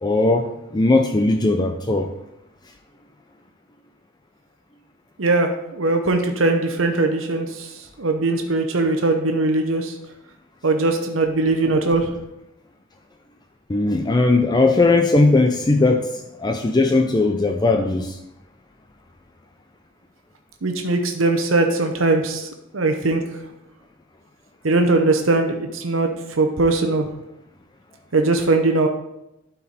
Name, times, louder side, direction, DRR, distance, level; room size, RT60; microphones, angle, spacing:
voice 1, 0.0-2.1 13.7-18.2, left 2 dB, 20° left, 4 dB, 0.5 m, -18 dB
voice 2, 5.2-7.7 8.0-9.9 10.6-12.1 20.6-23.4 24.6-26.1 26.4-27.1 28.1-28.9, right 2 dB, 85° right, 5 dB, 0.9 m, -20 dB
11.5 x 4.6 x 4.1 m, 0.86 s
head